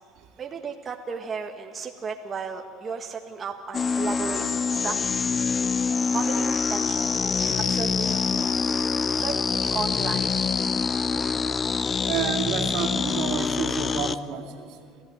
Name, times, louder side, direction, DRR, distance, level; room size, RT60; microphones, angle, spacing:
voice 1, 0.4-5.2 6.1-8.2 9.1-10.3, right 5 dB, 30° right, 2 dB, 1.7 m, -34 dB
sound 1, 3.7-14.2, left 5 dB, 30° left, 0.8 m, -25 dB
voice 2, 12.0-14.8, right 8 dB, 70° right, 3 dB, 3.0 m, -30 dB
28.5 x 15.0 x 9.3 m, 2.2 s
supercardioid pair, 95°, 0 cm